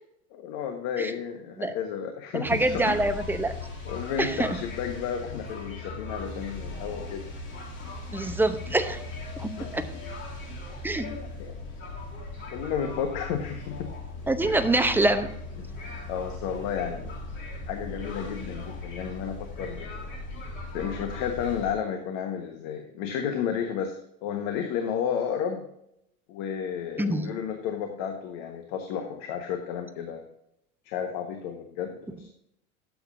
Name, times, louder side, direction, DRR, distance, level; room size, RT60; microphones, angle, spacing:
voice 1, 0.3-3.0 3.8-7.3 9.6-9.7 10.9-11.5 12.5-13.9 16.1-17.2 17.7-20.0 20.7-23.9 24.2-25.6 26.3-30.2 30.8-31.9 32.2-32.3, left 8 dB, 50° left, 5 dB, 1.4 m, -32 dB
voice 2, 2.3-3.5 4.2-4.6 8.1-9.0 9.4-9.9 10.8-11.1 14.3-15.3 27.0-27.3, right 2 dB, 5° right, 8 dB, 0.7 m, -25 dB
sound 1, 2.4-21.7, left 2 dB, 25° left, 2.7 m, -38 dB
12.0 x 7.8 x 2.6 m, 0.76 s
hypercardioid pair, 90°, 43 cm